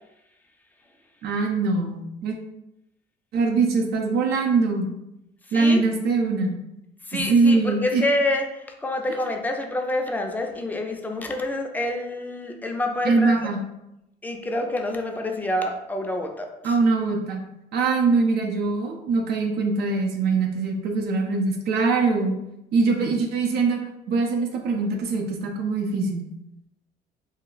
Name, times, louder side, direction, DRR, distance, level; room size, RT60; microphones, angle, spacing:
voice 1, 1.2-2.4 3.3-4.9 5.5-6.5 7.1-8.0 13.0-13.6 16.6-17.4 17.7-22.3 22.7-23.8 24.1-26.3, right 4 dB, 70° right, 1 dB, 0.5 m, -22 dB
voice 2, 5.5-5.9 7.1-13.3 14.2-16.8, left 1 dB, 10° left, 2 dB, 0.4 m, -27 dB
2.3 x 2.0 x 3.8 m, 0.86 s
cardioid pair, 110°, 17 cm